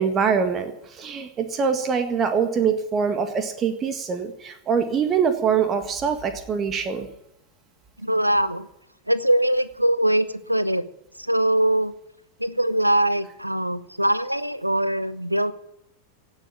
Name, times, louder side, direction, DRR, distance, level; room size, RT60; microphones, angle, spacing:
voice 1, 0.0-7.1, right 6 dB, 25° right, 8 dB, 1.7 m, -24 dB
voice 2, 8.0-8.7 9.1-10.8 11.2-11.9 12.4-15.5, right 1 dB, 90° right, 16 dB, 0.9 m, -22 dB
17.5 x 7.3 x 9.9 m, 0.80 s
figure-of-eight pair, 90°, 0 cm